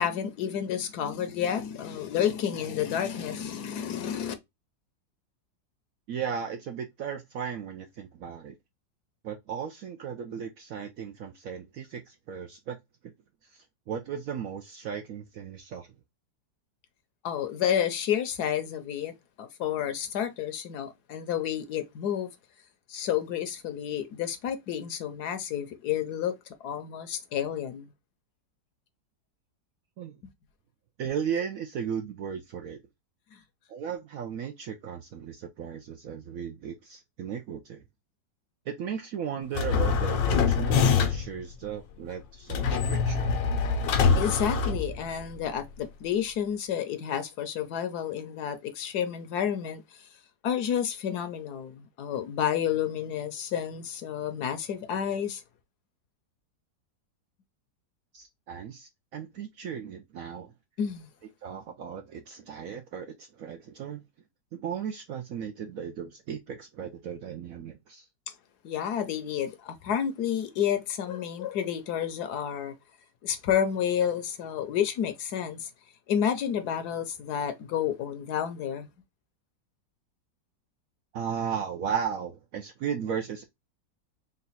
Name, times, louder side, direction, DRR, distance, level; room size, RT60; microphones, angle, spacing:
voice 1, 0.0-4.3 17.2-19.1 19.4-22.3 22.9-26.3 26.6-27.9 33.3-33.4 44.1-50.1 50.4-55.4 60.8-61.1 68.3-68.4 68.6-72.7 73.2-75.7 76.1-78.9, left 9 dB, 70° left, 1.1 m, -30 dB
voice 2, 6.1-8.6 9.2-12.8 13.0-13.1 13.4-15.9 30.0-30.2 31.0-32.8 33.7-37.8 38.7-43.3 58.1-60.5 61.4-64.0 64.5-68.1 81.1-83.4, right 7 dB, 70° right, 0.8 m, -36 dB
sound 1, 39.5-41.4 42.5-45.4, left 5 dB, 90° left, 1.5 m, -24 dB
4.0 x 2.3 x 4.0 m
omnidirectional pair, 1.9 m